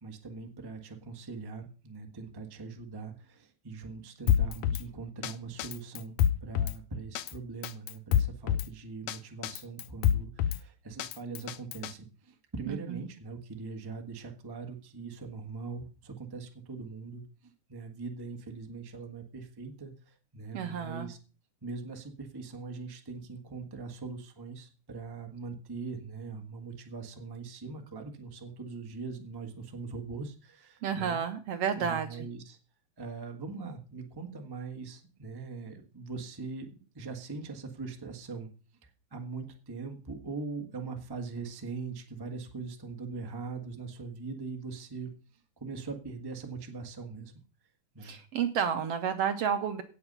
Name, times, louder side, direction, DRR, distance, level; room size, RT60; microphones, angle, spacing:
voice 1, 0.0-6.2 6.4-21.2 21.6-31.2 31.8-32.6 33.0-38.5 39.1-45.1 45.6-47.3 47.9-48.2, right 4 dB, 15° right, 4 dB, 0.7 m, -41 dB
Drum kit, 4.3-4.8 5.2-5.3 5.6-6.8 7.2-7.3 7.6-8.7 9.1-9.2 9.4-10.6 11.0-11.9, left 10 dB, 75° left, 1.8 m, -27 dB
voice 2, 12.7-13.0 20.5-21.1 30.8-32.3 48.0-49.8, right 7 dB, 70° right, 9 dB, 1.7 m, -31 dB
17.0 x 7.1 x 5.5 m, 0.36 s
omnidirectional pair, 3.5 m